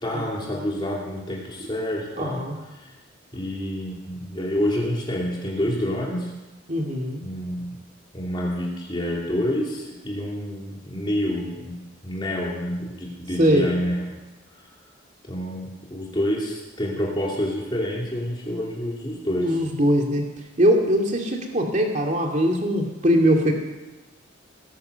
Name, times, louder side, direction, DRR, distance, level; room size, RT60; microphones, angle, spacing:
voice 1, 0.0-2.4 3.3-6.3 7.2-7.8 8.1-14.1 15.3-19.5, equal, 25° left, -3 dB, 2.9 m, -28 dB
voice 2, 2.2-2.6 6.7-7.2 13.4-13.7 19.4-20.3 20.6-23.6, equal, 35° right, 1 dB, 2.5 m, -21 dB
18.5 x 10.5 x 6.8 m, 1.1 s
head